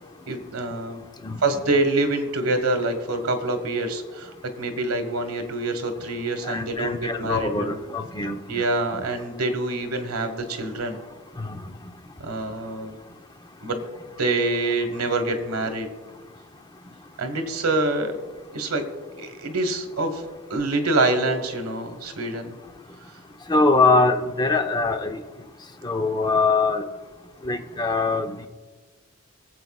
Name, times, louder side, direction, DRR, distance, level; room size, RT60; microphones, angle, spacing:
voice 1, 0.3-1.0 1.4-4.3 4.6-7.8 8.5-11.0 12.2-12.9 13.6-13.8 14.2-15.9 17.2-18.1 18.5-18.8 19.2-20.2 20.5-22.6, right 2 dB, 90° right, 7 dB, 1.3 m, -26 dB
voice 2, 6.4-8.6 8.9-9.1 11.4-11.6 23.5-25.2 25.8-26.8 27.4-28.5, left 3 dB, 20° left, 6 dB, 0.6 m, -23 dB
24.0 x 8.1 x 2.3 m, 1.3 s
head